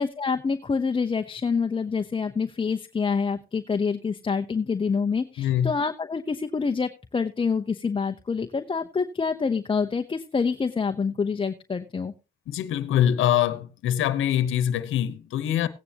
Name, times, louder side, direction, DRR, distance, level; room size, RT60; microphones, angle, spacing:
voice 1, 0.0-12.1, left 5 dB, 25° left, 0.8 m, -27 dB
voice 2, 5.4-5.7 12.5-15.7, left 10 dB, 80° left, 1.1 m, -24 dB
16.0 x 9.4 x 2.9 m
cardioid pair, 90°, 20 cm